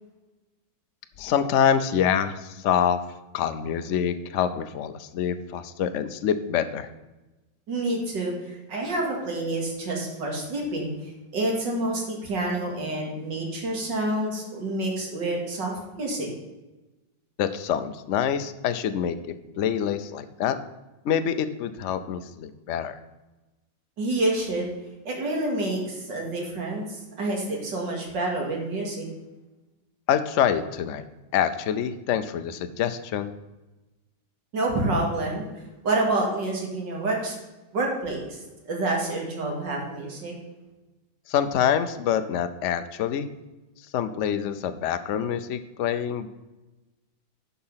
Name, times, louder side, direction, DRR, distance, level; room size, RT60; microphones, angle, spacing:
voice 1, 1.2-3.0 3.3-6.9 17.4-20.6 21.0-23.0 30.1-31.0 31.3-33.3 41.3-43.3 43.9-46.3, left 8 dB, 80° left, 10 dB, 0.6 m, -26 dB
voice 2, 7.7-16.3 24.0-24.7 25.0-29.1 34.5-35.5 35.8-37.4 37.7-40.4, right 2 dB, 65° right, 0 dB, 2.9 m, -28 dB
10.5 x 5.7 x 5.6 m, 1.1 s
omnidirectional pair, 2.1 m